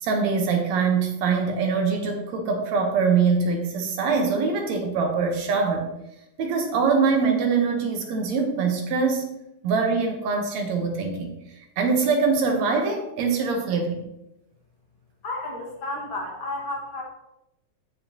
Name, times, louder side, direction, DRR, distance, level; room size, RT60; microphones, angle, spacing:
voice 1, 0.0-5.9 6.4-9.3 9.6-11.3 11.8-14.1, right 5 dB, 70° right, 3 dB, 2.3 m, -23 dB
voice 2, 15.2-17.0, left 2 dB, 50° left, -1 dB, 1.9 m, -32 dB
14.0 x 5.1 x 2.9 m, 0.88 s
omnidirectional pair, 3.4 m